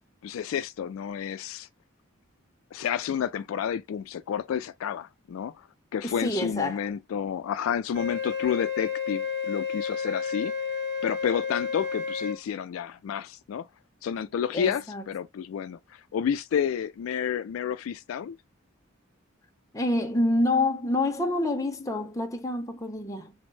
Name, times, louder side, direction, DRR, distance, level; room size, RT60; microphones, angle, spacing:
voice 1, 0.2-1.7 2.7-5.7 5.9-10.5 11.0-13.7 14.0-18.4, left 8 dB, 80° left, 0.3 m, -30 dB
voice 2, 6.0-6.8 14.5-15.0 19.7-23.3, left 2 dB, 15° left, 0.6 m, -27 dB
Wind instrument woodwind instrument, 7.9-12.4, left 6 dB, 60° right, 0.6 m, -31 dB
3.4 x 2.0 x 3.1 m
head